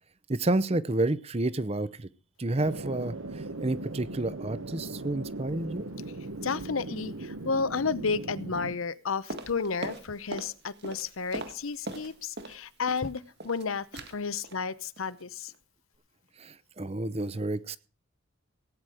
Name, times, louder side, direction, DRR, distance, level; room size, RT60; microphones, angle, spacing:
voice 1, 0.3-2.1 2.4-5.9 16.4-17.8, right 2 dB, 30° right, 16 dB, 0.7 m, -30 dB
sound 1, 2.6-8.7, right 2 dB, 75° right, 1.1 m, -39 dB
voice 2, 6.4-15.5, left 5 dB, 75° left, 16 dB, 0.8 m, -32 dB
sound 2, 9.3-10.5 10.8-12.6 12.9-13.6 13.9-14.2 14.4-14.7 15.0-15.2 15.5-15.6, right 2 dB, 50° right, 1.8 m, -40 dB
17.5 x 9.3 x 4.9 m, 0.35 s
head